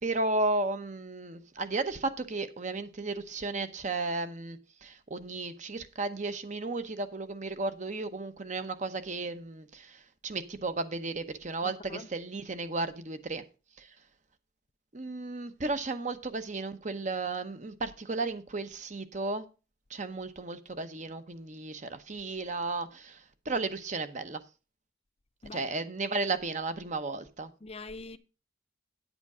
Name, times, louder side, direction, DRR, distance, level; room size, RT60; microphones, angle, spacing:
voice 1, 0.0-13.4 13.8-13.9 14.9-19.4 19.9-24.4 25.5-27.5, right 3 dB, 40° right, 0.9 m, -34 dB
voice 2, 11.6-12.1 25.4-25.6 27.6-28.2, left 3 dB, 35° left, 0.6 m, -43 dB
9.5 x 8.1 x 4.8 m
head